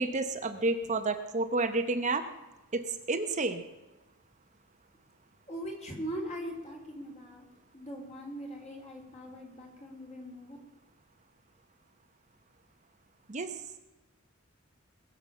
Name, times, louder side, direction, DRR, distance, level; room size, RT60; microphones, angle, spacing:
voice 1, 0.0-2.2 2.7-3.6 13.3-13.5, right 3 dB, 35° right, 7 dB, 0.9 m, -30 dB
voice 2, 5.5-7.5 7.7-10.6, equal, 35° left, 0 dB, 3.7 m, -41 dB
21.0 x 7.3 x 7.3 m, 1.1 s
head